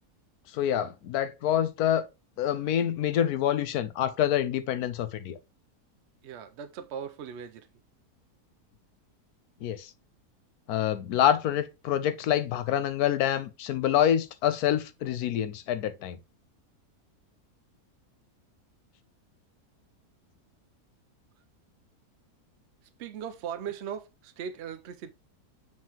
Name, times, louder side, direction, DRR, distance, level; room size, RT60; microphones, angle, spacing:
voice 1, 0.5-2.1 2.4-5.4 9.6-9.9 10.7-16.2, left 10 dB, 75° left, 1.2 m, -26 dB
voice 2, 6.2-7.7 23.0-25.1, right 8 dB, 70° right, 0.6 m, -38 dB
7.4 x 4.7 x 2.9 m
omnidirectional pair, 1.6 m